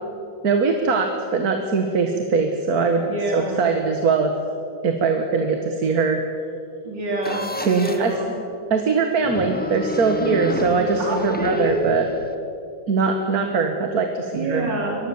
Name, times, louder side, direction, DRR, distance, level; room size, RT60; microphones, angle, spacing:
voice 1, 0.4-3.1 3.3-4.3 4.8-6.2 7.6-8.2 8.7-12.1 12.9-14.7, right 4 dB, 55° right, 5 dB, 1.9 m, -21 dB
voice 2, 3.0-3.6 6.8-8.3 10.2-10.4 11.0-11.7 14.3-15.1, right 2 dB, 85° right, -2 dB, 4.2 m, -27 dB
sound 1, 7.2-8.2 9.2-12.3, left 1 dB, 5° left, 1.2 m, -31 dB
25.0 x 19.5 x 7.2 m, 2.6 s
omnidirectional pair, 1.9 m